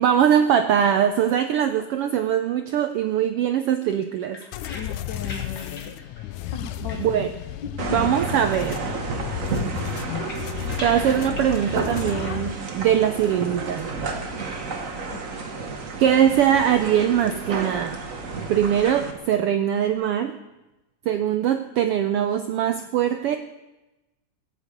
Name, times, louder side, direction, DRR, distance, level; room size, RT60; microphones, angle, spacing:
voice 1, 0.0-4.4 7.0-7.3 7.9-8.9 10.8-13.9 16.0-18.0 18.5-20.4 21.1-23.4, right 9 dB, 80° right, 8 dB, 1.3 m, -21 dB
sound 1, 3.9-7.6 7.9-8.8 9.1-12.3, left 3 dB, 35° left, 2.3 m, -44 dB
sound 2, 4.5-12.5, left 13 dB, 85° left, 2.1 m, -33 dB
voice 2, 4.7-5.9 6.5-7.1 7.8-8.2 15.1-15.3, left 4 dB, 65° left, 4 dB, 1.1 m, -36 dB
sound 3, 7.8-19.1, right 4 dB, 45° right, 1.1 m, -31 dB
17.0 x 8.1 x 8.3 m, 1.0 s
omnidirectional pair, 3.4 m